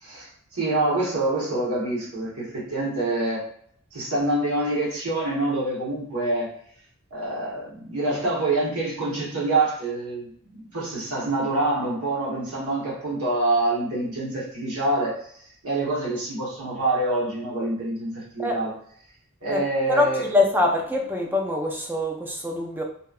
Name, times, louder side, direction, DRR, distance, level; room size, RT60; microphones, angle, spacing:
voice 1, 0.0-3.4 3.9-6.5 7.1-15.2 15.6-18.7 19.4-20.3, right 2 dB, 75° right, -5 dB, 1.0 m, -26 dB
voice 2, 19.5-22.8, left 2 dB, 10° right, 1 dB, 0.3 m, -24 dB
2.7 x 2.2 x 2.3 m, 0.64 s
head